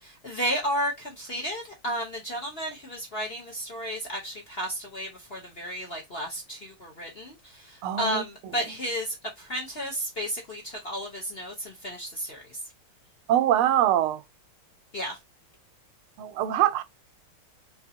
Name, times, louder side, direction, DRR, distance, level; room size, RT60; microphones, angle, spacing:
voice 1, 0.0-12.6 14.9-15.2, equal, 50° left, 0.7 m, -33 dB
voice 2, 7.8-8.2 13.3-14.2 16.2-16.8, right 11 dB, 85° right, 1.5 m, -23 dB
4.1 x 3.0 x 2.7 m
omnidirectional pair, 2.3 m